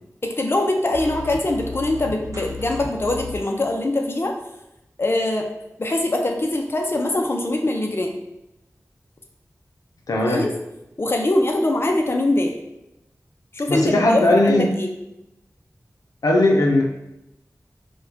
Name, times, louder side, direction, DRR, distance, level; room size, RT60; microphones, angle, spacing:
voice 1, 0.2-4.3 5.0-5.5 5.8-8.1 10.2-10.5 11.0-12.5 13.5-14.9, left 2 dB, 40° left, 2 dB, 0.5 m, -22 dB
sound 1, 0.9-3.6, left 3 dB, 65° right, 0.7 m, -34 dB
voice 2, 10.1-10.4 13.7-14.7 16.2-16.8, left 1 dB, 85° left, 0 dB, 0.5 m, -18 dB
4.4 x 2.2 x 2.7 m, 0.89 s
cardioid pair, 45°, 6 cm